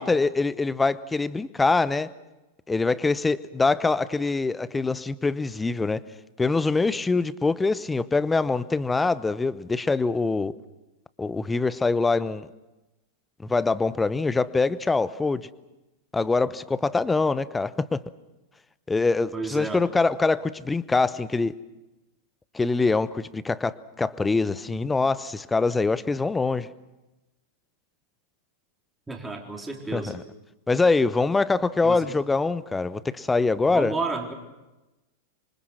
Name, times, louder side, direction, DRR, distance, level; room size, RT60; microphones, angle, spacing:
voice 1, 0.0-2.1 2.7-6.0 6.4-10.5 11.2-12.5 13.4-15.5 16.1-18.0 18.9-21.5 22.5-26.7 29.9-30.2 30.7-34.0, left 3 dB, 10° left, 17 dB, 0.9 m, -24 dB
voice 2, 19.3-19.8 29.1-30.1 31.8-32.0 33.7-34.3, right 3 dB, 10° right, 1 dB, 4.0 m, -31 dB
26.0 x 25.0 x 6.3 m, 1.0 s
figure-of-eight pair, 90°, 0 cm